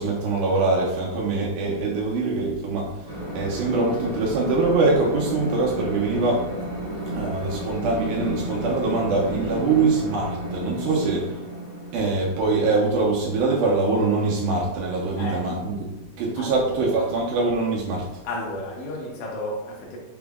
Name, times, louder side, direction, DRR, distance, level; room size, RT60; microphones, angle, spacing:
voice 1, 0.0-6.5 7.1-11.2 11.9-15.9 16.2-18.1, right 3 dB, 80° right, -3 dB, 2.1 m, -23 dB
sound 1, 3.1-14.1, right 1 dB, 45° left, 1.2 m, -33 dB
voice 2, 9.5-9.8 10.9-11.2 15.2-15.6 16.3-17.1 18.2-20.0, left 1 dB, 75° left, -2 dB, 2.3 m, -34 dB
5.8 x 2.1 x 3.4 m, 1.0 s
omnidirectional pair, 3.7 m